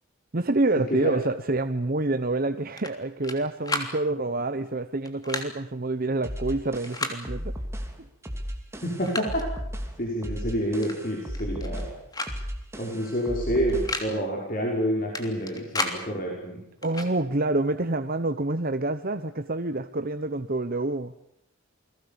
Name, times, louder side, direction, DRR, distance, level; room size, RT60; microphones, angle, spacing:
voice 1, 0.3-7.6 16.8-21.1, right 2 dB, 45° right, 9 dB, 0.9 m, -27 dB
sound 1, 2.8-3.4 3.6-3.9 5.1-5.5 6.8-7.2 8.3-8.4 8.8-9.5 10.8-11.0 11.3-11.8 12.1-12.4 12.6-12.7 13.7-14.1 15.2-16.0 16.8-17.1, left 2 dB, 20° left, 3.2 m, -32 dB
sound 2, 6.2-14.0, equal, 15° right, 2.9 m, -35 dB
voice 2, 8.8-9.4 10.0-11.8 12.8-16.6, equal, 40° left, -1 dB, 5.8 m, -28 dB
29.5 x 21.5 x 7.0 m, 0.79 s
head